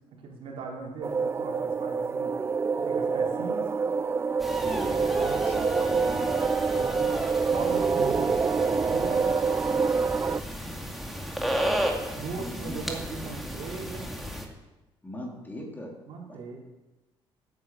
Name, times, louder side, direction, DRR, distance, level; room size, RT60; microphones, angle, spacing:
voice 1, 0.2-2.3 2.8-3.7 5.1-5.4 6.6-7.1 7.5-9.2 12.1-14.1 16.1-16.6, right 4 dB, 60° right, -3 dB, 4.2 m, -38 dB
sound 1, 1.0-10.4, right 5 dB, 25° right, 0.5 m, -26 dB
sound 2, 4.4-14.5, equal, ahead, 2.2 m, -33 dB
voice 2, 4.6-4.9 5.4-6.2 12.3-12.8 15.0-15.9 16.2-16.4, equal, 15° left, 0 dB, 3.1 m, -39 dB
9.9 x 9.6 x 7.5 m, 1.1 s
cardioid pair, 100°, 10 cm